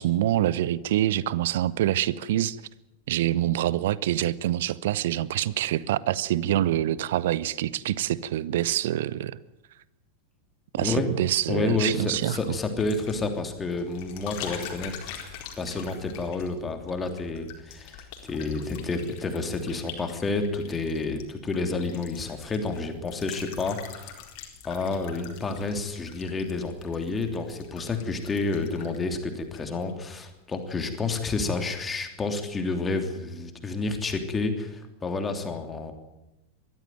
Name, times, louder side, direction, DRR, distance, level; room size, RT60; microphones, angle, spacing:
voice 1, 0.0-2.6 3.1-9.4 10.7-12.4, right 13 dB, 55° right, 20 dB, 0.7 m, -26 dB
voice 2, 10.8-11.1 11.5-24.2 24.6-35.9, left 3 dB, 15° left, 5 dB, 3.0 m, -30 dB
sound 1, 11.9-30.2 30.5-30.9, left 8 dB, 45° left, 4.2 m, -44 dB
22.5 x 15.5 x 9.3 m, 0.94 s
figure-of-eight pair, 90°, 0 cm